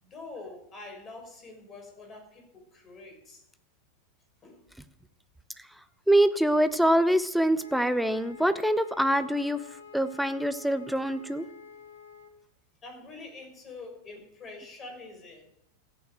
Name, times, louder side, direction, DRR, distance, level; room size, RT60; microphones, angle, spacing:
voice 1, 0.0-3.4 4.4-4.6 12.8-15.5, left 3 dB, 25° left, 2 dB, 5.7 m, -45 dB
voice 2, 6.1-9.6 9.9-11.4, right 1 dB, ahead, 12 dB, 0.9 m, -24 dB
Wind instrument woodwind instrument, 7.5-12.3, left 5 dB, 75° left, 2.2 m, -49 dB
14.5 x 8.8 x 9.1 m, 0.81 s
figure-of-eight pair, 90°, 0 cm